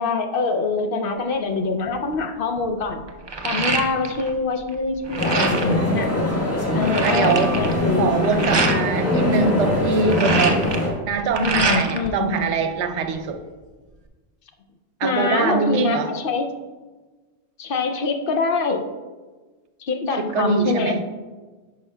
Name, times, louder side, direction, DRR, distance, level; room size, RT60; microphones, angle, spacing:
voice 1, 0.0-3.0 3.4-6.1 6.7-8.1 11.4-12.3 15.0-16.5 17.6-18.9 19.8-21.0, left 4 dB, 60° left, 6 dB, 0.7 m, -24 dB
sound 1, 1.9-2.1 2.6-4.3 4.6-5.8 6.3-6.4 6.6-8.8 9.8-12.1 12.4-13.3, right 3 dB, 40° right, 0.3 m, -25 dB
sound 2, 5.2-10.9, left 1 dB, 15° left, 1.1 m, -22 dB
voice 2, 7.0-7.5 8.0-10.7 11.1-13.4 15.0-16.1 20.2-21.0, right 4 dB, 80° right, 8 dB, 0.9 m, -23 dB
10.5 x 5.5 x 2.2 m, 1.3 s
omnidirectional pair, 1.2 m